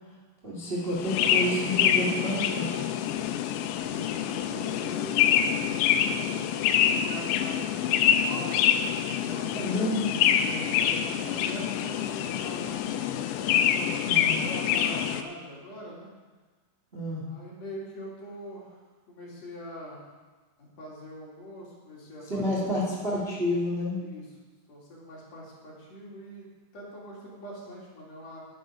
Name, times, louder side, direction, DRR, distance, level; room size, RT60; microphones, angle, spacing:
voice 1, 0.4-3.1 9.5-10.0 14.0-14.4 16.9-17.2 22.3-24.0, left 1 dB, 80° right, -5 dB, 0.5 m, -30 dB
sound 1, 0.9-15.2, left 9 dB, 90° left, 2.9 m, -26 dB
voice 2, 3.8-6.2 6.8-8.6 9.1-13.0 13.6-16.1 17.3-18.8 19.1-20.0 20.8-22.9 24.0-24.3 24.7-26.5 26.7-28.4, equal, 45° left, -4 dB, 3.3 m, -43 dB
11.5 x 9.7 x 5.2 m, 1.3 s
omnidirectional pair, 4.9 m